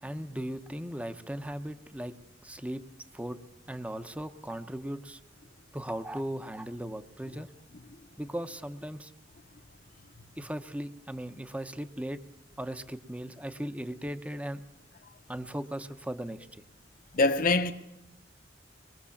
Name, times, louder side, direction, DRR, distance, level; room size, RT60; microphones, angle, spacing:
voice 1, 0.0-2.1 2.4-2.8 3.1-3.4 3.7-5.2 5.7-7.5 8.2-9.1 10.4-12.2 12.6-14.6 15.3-16.5, right 1 dB, 5° right, 1.0 m, -37 dB
voice 2, 17.1-17.7, left 3 dB, 50° left, 1.1 m, -24 dB
24.5 x 22.0 x 7.2 m
head